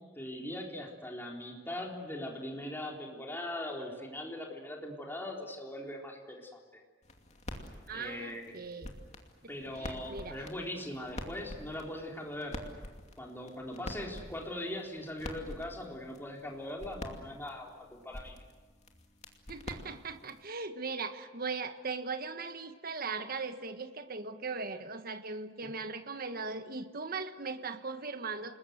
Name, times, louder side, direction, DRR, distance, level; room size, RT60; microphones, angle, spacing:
voice 1, 0.0-6.8 7.9-8.6 9.5-12.6 13.2-18.4, left 1 dB, 10° left, 0 dB, 3.9 m, -40 dB
sound 1, 7.0-20.5, left 1 dB, 40° left, 2.6 m, -47 dB
voice 2, 7.9-8.9 9.8-10.4 19.5-28.6, right 4 dB, 50° right, 9 dB, 1.4 m, -39 dB
29.0 x 21.0 x 8.1 m, 1.4 s
head